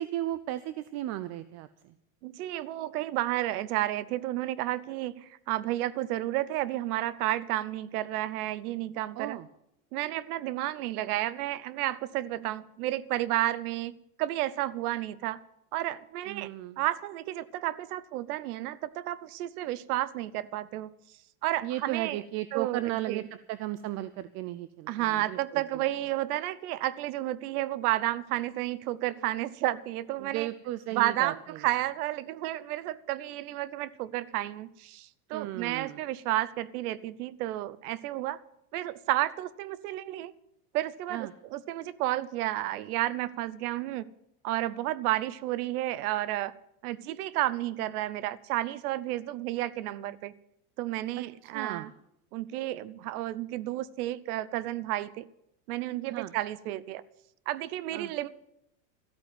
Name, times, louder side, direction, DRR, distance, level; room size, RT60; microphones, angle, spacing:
voice 1, 0.0-1.7 9.2-9.5 12.4-12.5 16.3-16.8 21.6-25.6 30.2-31.3 35.3-36.0 41.1-41.3 51.5-51.9 56.1-56.3 57.9-58.1, right 15 dB, 35° right, 14 dB, 0.5 m, -35 dB
voice 2, 2.2-9.4 9.9-15.4 15.7-20.9 21.4-22.2 22.5-23.2 24.9-30.5 30.9-38.4 38.7-40.3 40.7-44.1 44.4-46.5 46.8-50.3 50.8-51.9 52.3-55.2 55.7-57.0 57.5-58.3, right 15 dB, 80° right, 19 dB, 0.9 m, -31 dB
13.5 x 8.6 x 9.2 m, 0.83 s
supercardioid pair, 145°, 44 cm